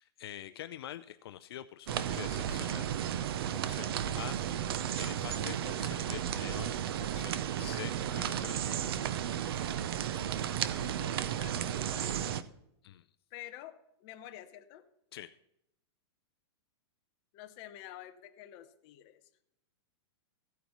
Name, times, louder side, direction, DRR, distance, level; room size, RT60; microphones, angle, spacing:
voice 1, 0.0-2.9 3.5-3.9 4.2-4.4 4.9-6.7 7.1-8.6 9.0-9.2 12.8-13.0 15.1-15.3, left 12 dB, 60° left, 11 dB, 0.5 m, -46 dB
sound 1, 1.9-12.4, right 10 dB, 60° right, 0.6 m, -34 dB
voice 2, 10.3-12.4 13.3-14.9 17.3-19.2, left 12 dB, 30° left, 7 dB, 0.8 m, -50 dB
15.5 x 9.3 x 3.0 m, 0.80 s
supercardioid pair, 170°, 14 cm